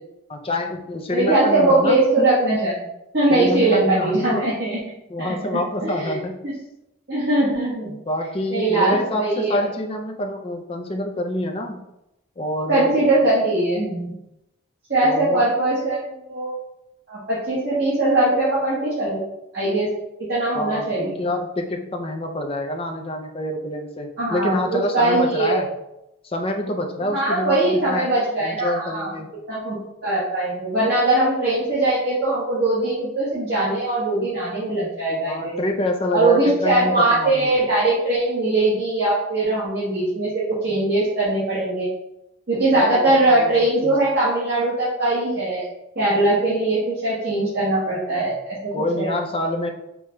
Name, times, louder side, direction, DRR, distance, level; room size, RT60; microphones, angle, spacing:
voice 1, 0.3-2.3 3.3-4.5 5.1-6.4 7.8-11.8 12.4-12.9 15.0-15.5 20.5-25.7 26.2-28.1 28.4-29.3 35.3-37.5 42.7-43.5 43.8-44.0 48.7-49.7, left 1 dB, 25° left, 4 dB, 0.4 m, -27 dB
voice 2, 1.1-2.7 3.1-4.8 5.2-6.1 6.4-6.5 7.1-7.9 8.5-9.6 12.7-14.1 14.9-16.5 17.1-19.2 19.5-19.9 20.3-21.1 24.2-25.6 27.1-29.1 29.5-29.8 30.0-35.6 36.1-41.9 42.5-45.7 45.9-49.1, right 2 dB, 50° right, -10 dB, 1.2 m, -21 dB
4.7 x 2.2 x 3.0 m, 0.87 s
head